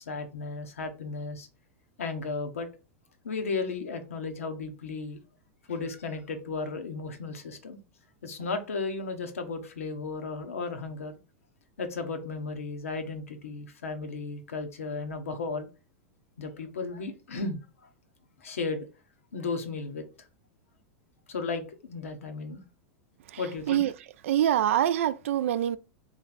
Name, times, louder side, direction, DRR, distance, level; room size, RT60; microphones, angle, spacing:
voice 1, 0.0-1.5 2.0-2.7 3.2-5.2 5.7-7.8 8.2-11.2 11.8-15.7 16.4-17.6 18.4-18.9 19.3-20.3 21.3-22.6 23.4-23.8, left 4 dB, 90° left, 0.9 m, -34 dB
voice 2, 24.2-25.8, right 11 dB, 75° right, 0.4 m, -24 dB
3.3 x 3.1 x 4.0 m
hypercardioid pair, 105°, 7 cm